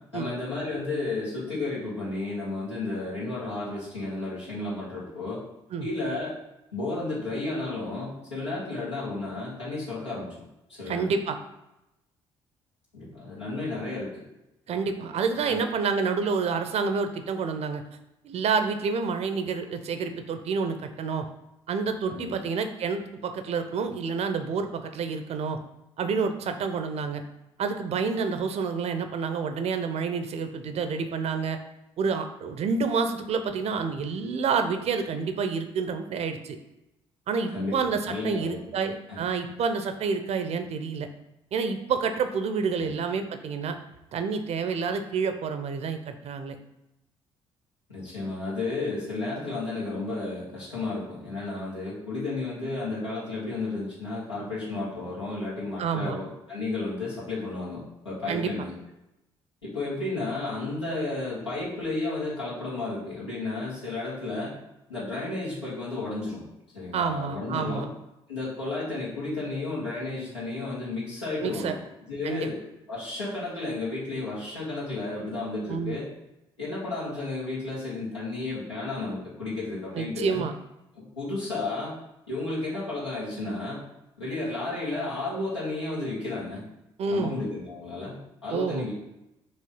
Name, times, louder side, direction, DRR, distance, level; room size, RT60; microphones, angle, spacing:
voice 1, 0.1-5.4 5.8-6.3 6.7-10.3 10.8-11.1 12.9-14.1 15.4-15.6 22.1-22.3 37.5-38.7 39.1-39.2 42.8-42.9 47.9-58.7 59.6-64.5 64.9-66.4 66.7-67.9 68.3-71.8 72.1-72.6 72.9-76.0 76.6-80.4 81.0-81.9 82.3-83.8 84.2-86.6 87.1-88.9, left 2 dB, 85° left, -9 dB, 2.1 m, -32 dB
voice 2, 10.9-11.4 14.7-17.8 18.2-21.3 21.7-25.6 26.0-27.2 27.6-31.6 32.0-36.6 37.3-41.1 41.5-43.8 44.1-46.6 55.8-56.2 58.3-58.5 66.9-67.9 71.4-71.7 72.2-72.5 75.7-76.0 79.9-80.5 87.0-87.4 88.5-88.9, right 5 dB, 50° right, 7 dB, 0.7 m, -28 dB
5.6 x 3.1 x 5.5 m, 0.90 s
figure-of-eight pair, 45°, 14 cm